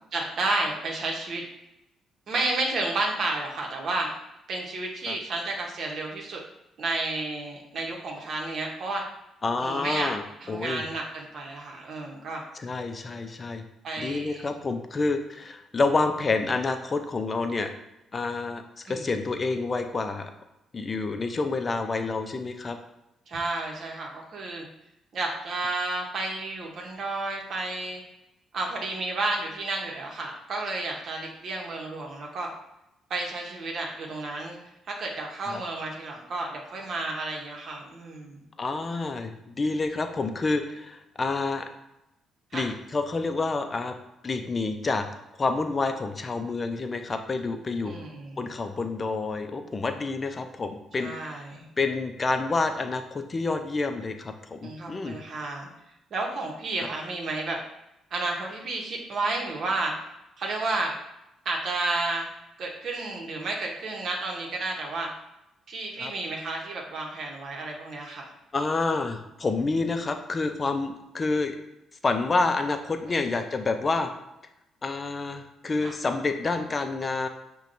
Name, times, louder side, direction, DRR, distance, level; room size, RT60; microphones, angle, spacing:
voice 1, 0.1-1.4 2.3-4.1 4.5-6.4 6.8-9.0 9.6-10.1 10.4-12.4 13.8-14.5 18.9-19.0 23.3-24.6 25.1-28.0 28.5-32.5 33.1-34.6 35.0-38.4 42.5-42.7 47.8-48.5 51.0-51.7 54.6-55.7 56.1-57.6 58.1-59.9 60.4-60.9 61.4-62.3 62.6-65.1 65.7-68.3 73.1-73.2 75.8-75.9, right 2 dB, 60° right, 0 dB, 0.8 m, -31 dB
voice 2, 9.4-10.2 10.5-10.8 12.5-13.6 14.0-17.7 18.1-20.3 20.7-22.8 35.5-35.6 38.6-41.6 42.5-44.0 44.2-45.1 45.4-48.0 48.4-51.4 51.8-55.2 66.0-66.1 68.5-71.6 72.0-74.1 74.8-77.3, left 3 dB, 35° left, 6 dB, 0.4 m, -28 dB
5.7 x 2.2 x 2.5 m, 0.89 s
cardioid pair, 90°, 0 cm